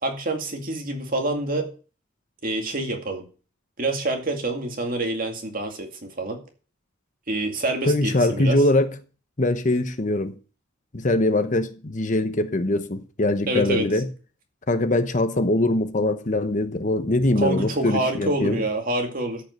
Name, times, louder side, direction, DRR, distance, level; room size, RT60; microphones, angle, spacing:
voice 1, 0.0-1.7 2.4-3.2 3.8-6.4 7.3-8.6 13.5-13.9 17.4-19.4, right 2 dB, 45° right, 2.2 m, -27 dB
voice 2, 7.9-8.9 9.4-10.3 10.9-14.1 14.7-18.6, left 2 dB, 40° left, 0.9 m, -22 dB
13.0 x 5.5 x 6.6 m
head